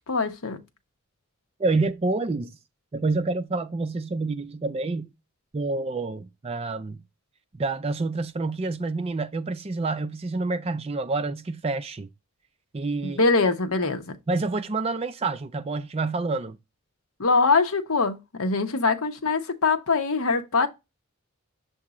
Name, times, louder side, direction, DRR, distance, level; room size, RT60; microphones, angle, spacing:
voice 1, 0.1-0.6 13.0-14.2 17.2-20.7, left 4 dB, 75° left, 1.0 m, -23 dB
voice 2, 1.6-2.6 2.9-5.1 5.5-7.0 7.6-12.1 12.7-13.2 14.3-16.6, right 3 dB, 25° right, 0.3 m, -28 dB
7.2 x 2.7 x 4.8 m
head